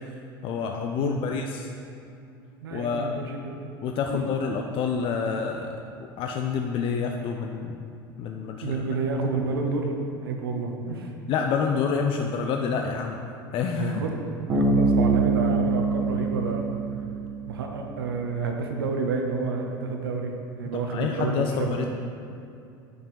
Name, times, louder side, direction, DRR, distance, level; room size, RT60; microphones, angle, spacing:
voice 1, 0.4-1.7 2.7-3.1 3.8-5.7 6.2-7.8 8.2-8.8 11.3-13.2 13.5-14.0 20.7-21.9, left 6 dB, 50° left, 3 dB, 0.5 m, -28 dB
voice 2, 2.6-3.5 4.1-4.2 8.6-9.9 10.2-11.1 13.7-14.2 14.5-16.8 17.5-20.3 20.6-21.9, right 4 dB, 85° right, 2 dB, 0.8 m, -29 dB
Bass guitar, 14.5-18.0, right 3 dB, 35° right, 1.9 m, -24 dB
6.7 x 5.4 x 5.6 m, 2.5 s
hypercardioid pair, 80°, 12 cm